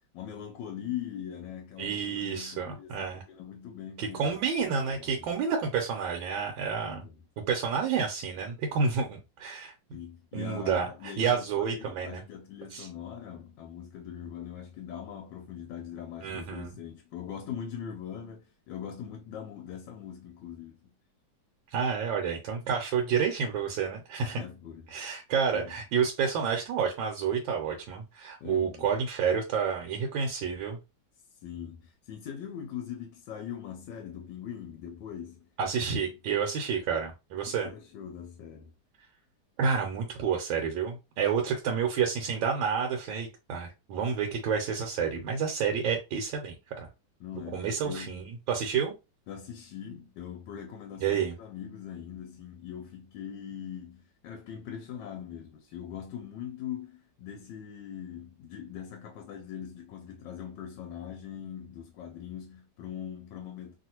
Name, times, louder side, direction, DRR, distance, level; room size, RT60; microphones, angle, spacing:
voice 1, 0.1-4.3 4.6-5.3 6.8-7.2 9.9-20.9 24.2-25.2 25.5-25.8 28.4-28.9 31.3-35.5 35.9-36.2 37.5-38.7 47.2-48.2 49.3-63.8, left 9 dB, 75° left, 1.2 m, -41 dB
voice 2, 1.8-3.2 4.0-7.0 7.5-9.7 10.3-12.2 12.7-12.9 16.2-16.7 21.7-24.4 24.9-30.8 35.6-37.7 39.6-46.9 47.5-48.9 51.0-51.3, right 6 dB, 85° right, 1.4 m, -29 dB
3.0 x 2.5 x 2.8 m
omnidirectional pair, 2.1 m